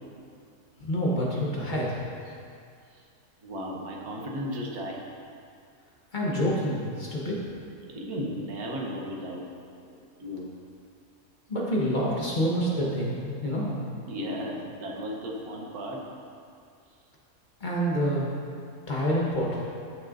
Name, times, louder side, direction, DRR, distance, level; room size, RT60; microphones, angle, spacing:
voice 1, 0.8-2.1 6.1-7.4 9.9-10.0 11.5-13.9 17.6-18.3 18.9-19.6, equal, 35° left, -5 dB, 1.2 m, -27 dB
voice 2, 3.4-5.0 7.9-9.5 10.2-10.5 14.0-16.0, equal, 85° right, -1 dB, 1.5 m, -35 dB
11.5 x 6.4 x 2.6 m, 2.3 s
omnidirectional pair, 1.6 m